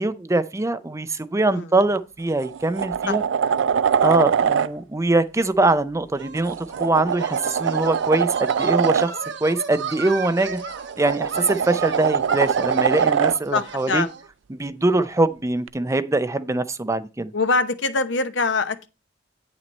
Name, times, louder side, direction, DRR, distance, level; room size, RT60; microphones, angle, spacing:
voice 1, 0.0-3.2 4.0-9.1 9.4-10.6 11.0-14.0 14.5-17.3, right 2 dB, 15° right, 0.5 m, -22 dB
sound 1, 1.8-2.0 2.4-4.7 6.3-9.1 10.6-13.4 15.7-15.8, right 7 dB, 90° right, 0.4 m, -23 dB
sound 2, 6.2-14.3, right 5 dB, 65° right, 1.0 m, -35 dB
voice 2, 13.5-14.1 17.3-18.9, left 3 dB, 70° left, 0.9 m, -23 dB
9.3 x 6.0 x 4.1 m
head